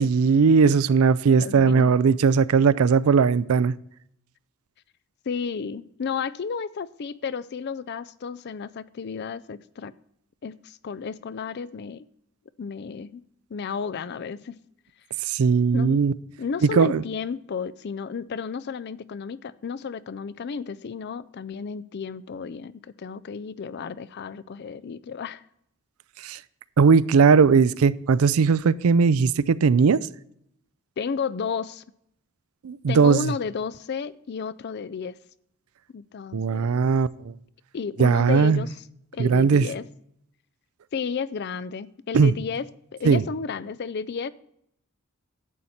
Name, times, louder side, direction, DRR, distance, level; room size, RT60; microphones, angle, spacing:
voice 1, 0.0-3.7 15.3-16.1 16.7-17.0 26.2-26.4 26.8-30.1 32.6-33.3 36.3-37.3 38.0-38.6 39.2-39.7 42.1-42.3 43.0-43.2, right 5 dB, 85° right, 0.4 m, -19 dB
voice 2, 1.2-1.9 5.3-9.9 10.4-12.1 12.6-13.2 13.5-14.6 15.7-16.0 16.4-25.4 31.0-31.8 32.9-35.2 35.9-36.9 37.7-38.7 39.1-39.8 40.9-44.3, left 6 dB, 50° left, 0.4 m, -32 dB
11.0 x 7.9 x 4.2 m
head